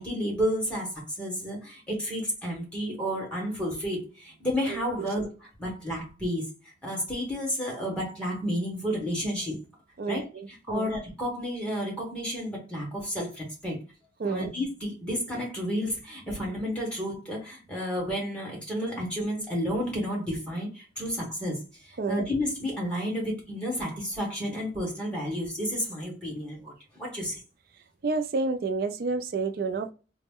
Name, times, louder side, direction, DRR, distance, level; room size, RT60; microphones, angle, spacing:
voice 1, 0.0-5.3 5.6-6.5 6.8-9.5 10.1-13.8 14.2-27.4, equal, 5° left, 1.3 m, -31 dB
voice 2, 4.7-5.1 10.0-10.9 14.2-14.5 22.0-22.2 28.0-29.9, right 4 dB, 55° right, 0.4 m, -30 dB
3.9 x 2.1 x 3.6 m
head